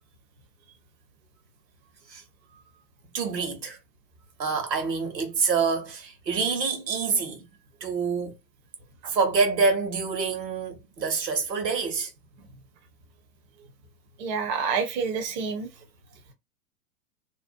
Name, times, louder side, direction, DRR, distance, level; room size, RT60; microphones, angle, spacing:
voice 1, 3.1-3.8 4.4-7.4 7.8-8.3 9.1-12.1, right 5 dB, 75° right, 1.1 m, -26 dB
voice 2, 14.2-15.7, right 5 dB, 30° right, 0.5 m, -28 dB
2.6 x 2.1 x 2.4 m
figure-of-eight pair, 100°, 50 cm